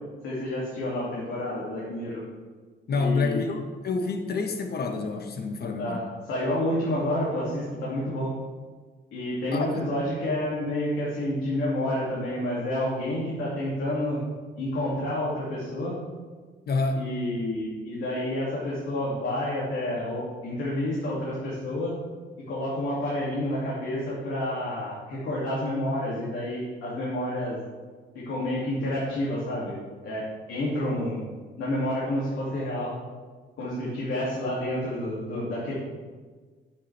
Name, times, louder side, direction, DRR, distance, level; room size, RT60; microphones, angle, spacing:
voice 1, 0.2-2.2 2.9-3.5 5.8-8.3 9.1-14.2 14.6-16.0 17.0-22.0 22.5-27.6 28.1-29.8 30.0-30.2 30.5-31.2 31.6-32.9 33.6-35.7, left 1 dB, 80° left, -7 dB, 2.5 m, -29 dB
voice 2, 2.9-6.0 9.5-9.7 16.7-17.1, left 4 dB, 55° left, 5 dB, 1.2 m, -28 dB
9.1 x 8.3 x 3.4 m, 1.4 s
cardioid pair, 90°, 20 cm